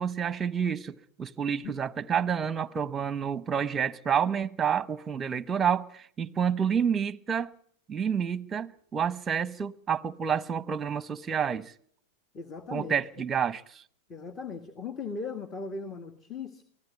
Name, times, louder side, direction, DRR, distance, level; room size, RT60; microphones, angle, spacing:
voice 1, 0.0-7.5 7.9-11.7 12.7-13.8, right 7 dB, 20° right, 0.9 m, -29 dB
voice 2, 12.3-13.0 14.1-16.6, left 4 dB, 25° left, 1.8 m, -38 dB
24.0 x 16.5 x 9.5 m
hypercardioid pair, 105°, 0 cm